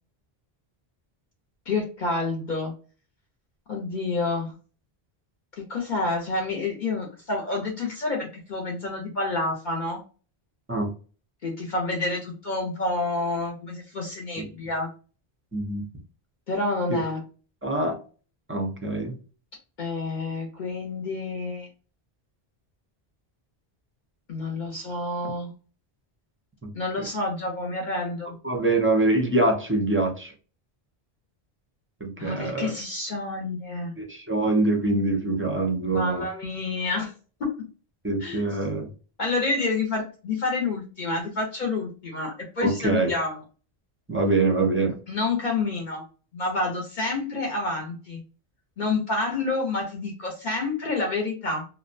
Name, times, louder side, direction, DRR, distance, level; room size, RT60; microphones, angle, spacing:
voice 1, 1.7-2.7 3.7-4.5 5.7-10.0 11.4-14.9 16.5-17.2 19.8-21.7 24.3-25.5 26.7-28.4 32.2-33.9 35.9-37.1 37.4-37.5 38.2-38.5 39.2-43.4 45.1-46.0 46.3-48.2 48.8-51.6, left 3 dB, 55° left, 0 dB, 0.7 m, -28 dB
voice 2, 15.5-15.8 16.9-17.0 17.6-18.0 18.5-19.1 26.6-26.7 28.4-30.3 32.0-32.7 34.0-36.2 38.0-38.9 42.6-43.1 44.1-44.9, right 2 dB, 20° right, 2 dB, 0.4 m, -24 dB
2.5 x 2.1 x 2.5 m, 0.37 s
omnidirectional pair, 1.0 m